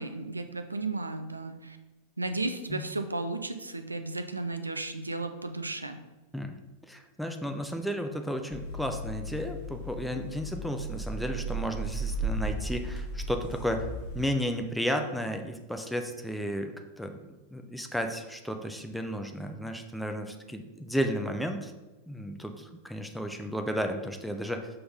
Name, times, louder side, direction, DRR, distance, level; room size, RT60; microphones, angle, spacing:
voice 1, 0.0-1.8 2.2-6.0, right 2 dB, 80° right, 8 dB, 0.5 m, -34 dB
voice 2, 6.3-13.9 14.1-17.2 17.5-21.7 22.1-24.7, equal, ahead, 5 dB, 0.6 m, -33 dB
sound 1, 8.5-14.2, right 2 dB, 45° left, 1.5 m, -35 dB
5.7 x 5.4 x 4.0 m, 1.1 s
figure-of-eight pair, 90°, 0 cm